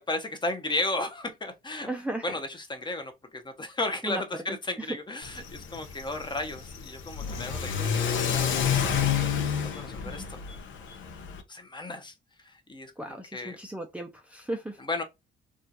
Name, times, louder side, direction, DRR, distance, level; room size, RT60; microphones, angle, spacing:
voice 1, 0.0-1.9 2.2-9.1 9.6-10.4 11.5-12.1 12.4-13.6 14.9-15.0, left 2 dB, 25° left, 0.9 m, -34 dB
voice 2, 1.8-2.3 4.0-4.2 4.5-5.0 10.0-10.3 13.0-14.8, right 1 dB, 5° right, 0.6 m, -36 dB
Car / Accelerating revving vroom, 5.2-11.4, left 7 dB, 80° left, 0.9 m, -29 dB
3.5 x 2.4 x 2.8 m
cardioid pair, 90°, 20 cm